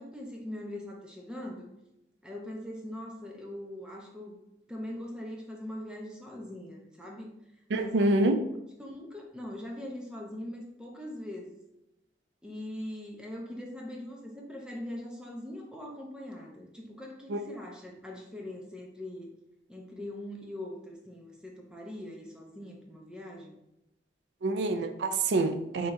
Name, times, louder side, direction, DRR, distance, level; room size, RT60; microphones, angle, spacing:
voice 1, 0.0-1.7 2.2-4.4 4.7-7.3 7.7-8.0 8.8-11.6 12.4-19.3 19.7-23.6, left 1 dB, 5° right, -1 dB, 0.7 m, -41 dB
voice 2, 7.7-8.4 17.3-17.4 24.4-25.9, right 2 dB, 90° right, 8 dB, 0.4 m, -26 dB
4.9 x 2.9 x 3.7 m, 0.88 s
head